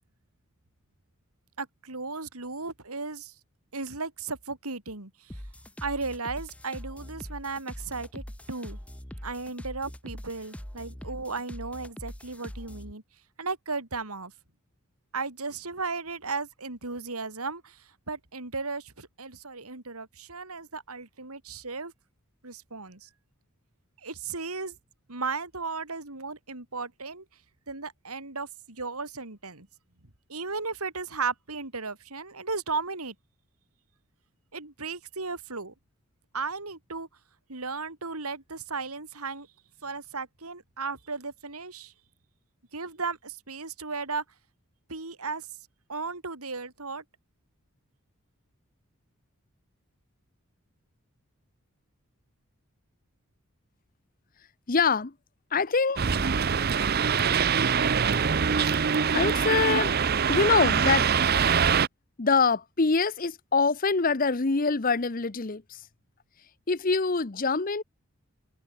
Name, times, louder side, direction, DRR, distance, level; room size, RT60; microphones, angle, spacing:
voice 1, 1.6-3.3 3.7-5.4 5.8-8.8 9.2-13.0 13.4-14.3 15.1-21.9 22.4-23.1 24.0-24.8 25.1-27.2 27.7-29.7 30.3-33.2 34.5-35.7 36.3-37.1 37.5-39.5 39.8-41.9 42.7-44.2 44.9-45.5 45.9-47.0, right 4 dB, 85° right, 3.7 m, -35 dB
sound 1, 5.3-12.9, equal, 5° left, 1.2 m, -42 dB
voice 2, 54.7-55.1 55.5-56.0 59.1-59.9 60.3-61.1 62.2-65.6 66.7-67.8, left 4 dB, 40° left, 0.8 m, -24 dB
sound 2, 56.0-61.9, right 6 dB, 45° right, 0.6 m, -24 dB
head